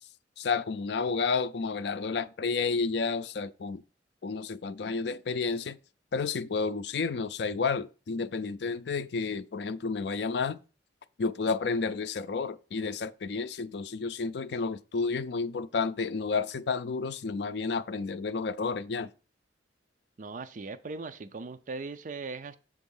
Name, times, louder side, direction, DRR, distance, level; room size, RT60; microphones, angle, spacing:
voice 1, 0.4-3.8 4.2-5.8 6.1-10.6 11.2-19.1, left 4 dB, 65° left, 0.4 m, -31 dB
voice 2, 20.2-22.6, right 3 dB, 45° right, 0.4 m, -39 dB
7.6 x 3.5 x 5.4 m
head